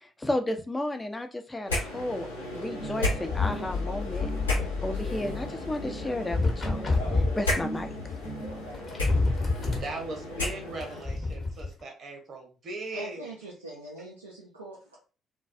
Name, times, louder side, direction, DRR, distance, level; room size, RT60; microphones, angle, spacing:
voice 1, 0.0-2.3 2.5-4.3 4.8-7.9, left 1 dB, 20° left, 7 dB, 0.4 m, -33 dB
sound 1, 1.7-11.0, left 2 dB, 85° left, 0.5 m, -34 dB
sound 2, 2.8-9.0, left 3 dB, 65° left, 0.9 m, -35 dB
sound 3, 6.3-7.4 8.5-8.6 8.7-9.9 10.8-11.7, left 2 dB, 35° left, 0.9 m, -27 dB
voice 2, 9.8-13.3, right 2 dB, 50° right, 1 dB, 0.8 m, -39 dB
voice 3, 12.9-15.0, right 1 dB, 90° right, -5 dB, 0.3 m, -42 dB
2.2 x 2.2 x 2.5 m, 0.36 s
figure-of-eight pair, 45°, 0 cm